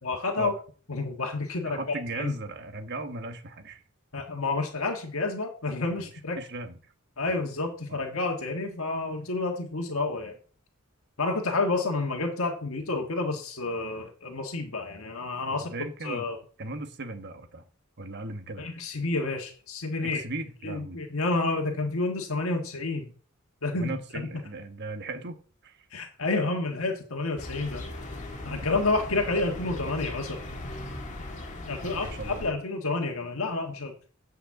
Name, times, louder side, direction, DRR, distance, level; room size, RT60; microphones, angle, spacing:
voice 1, 0.0-0.5 0.9-2.3 4.1-6.4 7.2-10.4 11.2-15.7 16.0-16.4 18.6-20.2 20.6-23.1 23.6-23.9 25.9-27.9 28.4-30.4 31.2-31.3 31.7-33.9, left 3 dB, 70° left, 2 dB, 1.6 m, -29 dB
voice 2, 1.6-3.8 6.4-6.7 7.9-8.0 15.5-16.3 16.6-17.6 18.0-18.6 20.0-21.0 23.8-25.8 31.8-32.5, right 2 dB, 55° right, 8 dB, 1.3 m, -37 dB
sound 1, 27.4-32.5, left 1 dB, 35° left, 2.1 m, -38 dB
9.1 x 5.4 x 7.4 m, 0.43 s
head